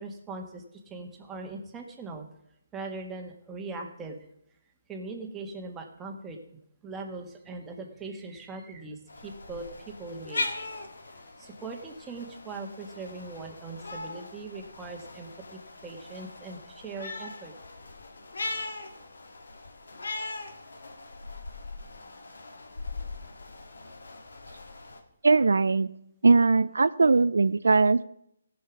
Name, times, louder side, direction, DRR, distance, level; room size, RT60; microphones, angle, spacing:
voice 1, 0.0-2.2 2.7-4.2 4.9-6.4 6.8-10.7 11.4-17.5, right 3 dB, 10° right, 1 dB, 1.6 m, -40 dB
sound 1, 9.1-25.0, left 2 dB, 75° left, 1.7 m, -40 dB
voice 2, 25.2-25.9 26.2-28.0, right 3 dB, 75° right, 15 dB, 0.4 m, -20 dB
17.0 x 5.7 x 6.0 m, 0.76 s
figure-of-eight pair, 150°, 0 cm